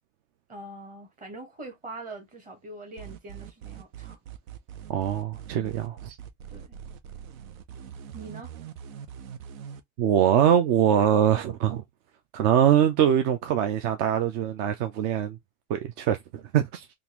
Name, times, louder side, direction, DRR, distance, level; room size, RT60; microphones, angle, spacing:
voice 1, 0.5-4.2 6.5-6.8 8.1-8.5, right 2 dB, 20° right, 1.2 m, -43 dB
dark hoover, 3.0-9.8, right 9 dB, 75° right, 0.8 m, -42 dB
voice 2, 4.9-6.2 10.0-11.8 12.3-15.4 15.7-16.9, right 9 dB, 40° right, 0.5 m, -23 dB
3.7 x 2.5 x 2.9 m
supercardioid pair, 155°, 41 cm